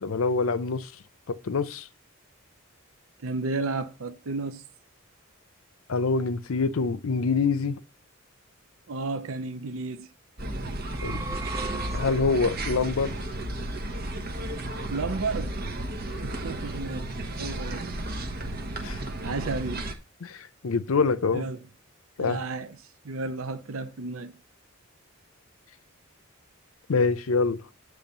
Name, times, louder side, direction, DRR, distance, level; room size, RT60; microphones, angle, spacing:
voice 1, 0.0-0.9 1.3-1.9 5.9-7.8 11.0-11.2 11.9-13.2 18.8-19.0 20.2-21.5 22.2-22.4 26.9-27.6, left 4 dB, 75° left, 0.6 m, -25 dB
voice 2, 3.2-4.6 8.9-10.1 14.9-15.6 16.2-17.0 17.4-18.0 18.7-19.8 21.3-21.6 22.2-22.8 23.0-24.4, right 3 dB, 70° right, 0.6 m, -32 dB
sound 1, 10.4-19.9, right 1 dB, 45° right, 1.1 m, -33 dB
sound 2, 10.7-12.6, right 3 dB, 15° right, 0.4 m, -37 dB
8.5 x 3.3 x 6.6 m
head